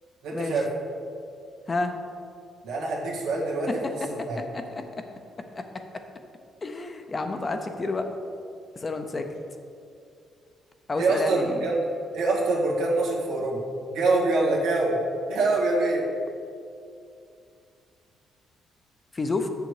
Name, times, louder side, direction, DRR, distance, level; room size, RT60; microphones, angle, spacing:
voice 1, 0.2-0.7 2.6-4.0 4.3-4.4 11.0-11.8 12.1-13.6 13.9-15.0 15.3-16.1, right 3 dB, 90° right, -4 dB, 1.8 m, -25 dB
voice 2, 4.0-4.6 5.0-5.1 5.6-5.7 6.6-8.1 8.8-9.3 10.9-11.6 19.1-19.5, left 3 dB, 30° left, 6 dB, 0.7 m, -30 dB
6.8 x 6.7 x 4.8 m, 2.4 s
cardioid pair, 90°, 0 cm